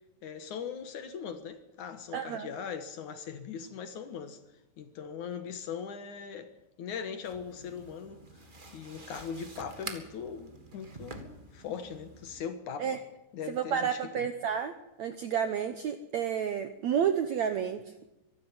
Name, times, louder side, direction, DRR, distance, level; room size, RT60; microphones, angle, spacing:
voice 1, 0.2-4.4 4.8-6.5 6.8-8.2 8.7-13.0 13.3-14.3, left 7 dB, 60° left, 2.4 m, -40 dB
voice 2, 2.1-2.5 12.8-13.0 13.5-14.7 15.0-17.8, right 8 dB, 75° right, 1.7 m, -30 dB
sound 1, 7.2-12.4, right 2 dB, 40° right, 0.7 m, -47 dB
23.5 x 12.0 x 9.4 m
omnidirectional pair, 4.4 m